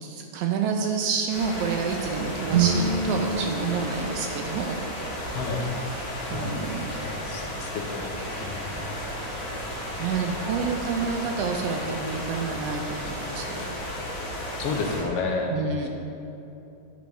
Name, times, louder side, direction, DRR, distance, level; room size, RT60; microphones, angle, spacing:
voice 1, 0.0-4.8 5.3-5.4 6.3-6.9 10.0-13.7 15.5-15.9, right 5 dB, 90° right, 2 dB, 1.4 m, -29 dB
sound 1, 1.3-15.0, equal, 40° left, 1.8 m, -34 dB
sound 2, 2.5-4.9, right 4 dB, 70° right, 1.9 m, -27 dB
voice 2, 6.3-6.7 7.0-8.1 8.4-8.7 14.6-15.5 15.8-15.9, left 4 dB, 75° left, 1 dB, 1.3 m, -31 dB
9.3 x 5.2 x 4.7 m, 2.9 s
omnidirectional pair, 3.4 m